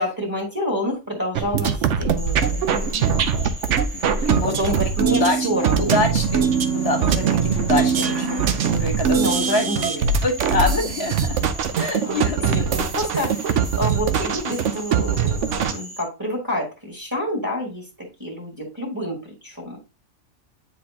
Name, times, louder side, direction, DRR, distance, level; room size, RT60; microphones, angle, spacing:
voice 1, 0.0-2.9 4.2-6.0 9.1-9.9 12.0-19.8, equal, 15° right, -2 dB, 1.9 m, -28 dB
sound 1, 1.3-15.7, right 7 dB, 70° right, 1.0 m, -22 dB
Frog, 2.2-16.0, equal, 10° left, 1.4 m, -39 dB
voice 2, 2.7-3.3 3.9-4.8 5.1-5.5 5.8-8.4 8.7-9.9 10.2-11.4 11.8-12.7 13.1-13.3, left 2 dB, 50° left, 2 dB, 1.8 m, -26 dB
sound 2, 6.2-8.4, right 5 dB, 50° right, 1.4 m, -30 dB
9.3 x 4.2 x 2.8 m, 0.29 s
omnidirectional pair, 1.3 m